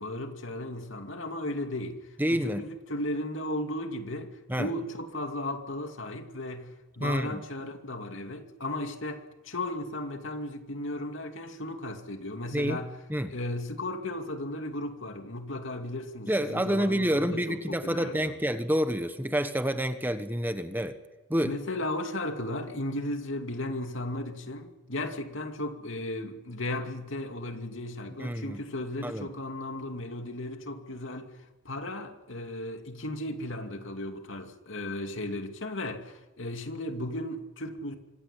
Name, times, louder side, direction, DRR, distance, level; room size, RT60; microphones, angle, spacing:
voice 1, 0.0-2.0 2.3-4.3 4.6-12.9 13.3-18.3 21.4-31.3 31.6-38.0, left 1 dB, 75° left, 2.5 m, -35 dB
voice 2, 2.2-2.6 4.5-4.7 7.0-7.4 12.5-12.8 13.1-13.3 16.3-21.0 21.3-21.6 28.2-28.6 29.0-29.3, equal, 10° right, 1.3 m, -28 dB
25.5 x 15.5 x 9.9 m
head